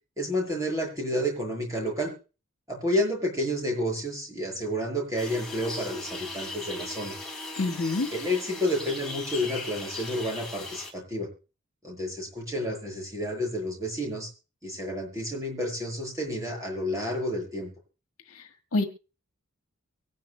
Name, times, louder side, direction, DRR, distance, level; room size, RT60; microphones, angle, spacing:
voice 1, 0.2-2.1 2.7-7.1 8.1-11.3 11.8-14.3 14.6-17.7, equal, 15° right, -1 dB, 7.2 m, -30 dB
sound 1, 5.2-10.9, left 2 dB, 5° left, 3.6 m, -38 dB
voice 2, 7.6-8.1 18.3-18.8, left 3 dB, 75° left, 5 dB, 1.6 m, -28 dB
24.5 x 10.5 x 2.2 m, 0.33 s
head